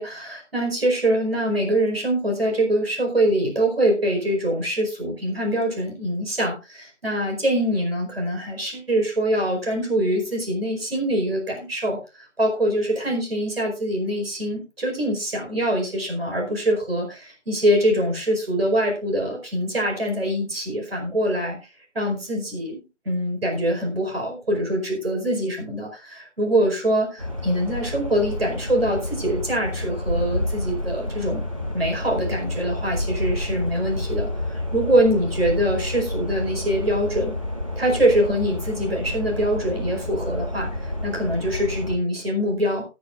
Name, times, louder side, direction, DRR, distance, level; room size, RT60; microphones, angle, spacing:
voice 1, 0.0-21.6 21.9-31.4 31.7-37.3 37.7-42.8, right 1 dB, 55° right, 1 dB, 5.0 m, -24 dB
sound 1, 27.2-42.0, left 1 dB, 30° right, 1.2 m, -29 dB
19.5 x 10.5 x 2.5 m, 0.29 s
figure-of-eight pair, 175°, 36 cm